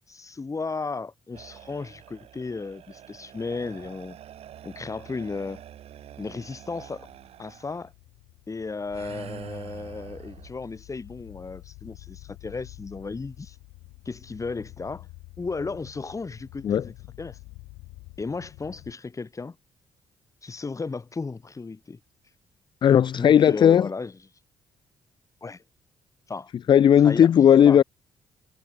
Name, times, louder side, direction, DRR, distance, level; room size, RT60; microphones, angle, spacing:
voice 1, 0.1-4.2 4.6-5.6 6.2-7.1 7.4-7.9 8.5-13.6 14.0-15.1 15.4-17.4 18.2-19.6 20.4-22.0 23.2-24.2 25.4-25.6 26.3-26.5 27.0-27.3 27.6-27.8, left 4 dB, 30° left, 1.6 m, -34 dB
sound 1, 1.3-7.8 8.9-10.5, right 11 dB, 65° right, 3.5 m, -46 dB
sound 2, 6.6-18.9, left 23 dB, 80° left, 3.8 m, -48 dB
voice 2, 22.8-23.9 26.7-27.8, left 9 dB, 45° left, 0.4 m, -16 dB
hypercardioid pair, 45°, 11 cm